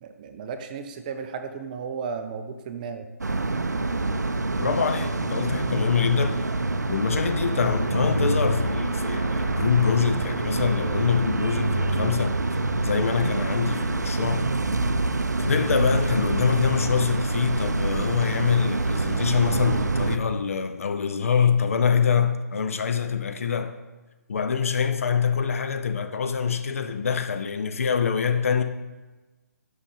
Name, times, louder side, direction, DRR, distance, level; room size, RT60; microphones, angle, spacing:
voice 1, 0.0-3.1, right 5 dB, 30° right, 0.5 m, -34 dB
sound 1, 3.2-20.2, right 2 dB, 80° right, 0.4 m, -26 dB
voice 2, 4.6-6.4 6.9-12.4 12.8-14.5 15.4-23.7 24.3-28.6, left 6 dB, 55° left, 0.6 m, -25 dB
6.2 x 5.5 x 5.3 m
figure-of-eight pair, 135°, 9 cm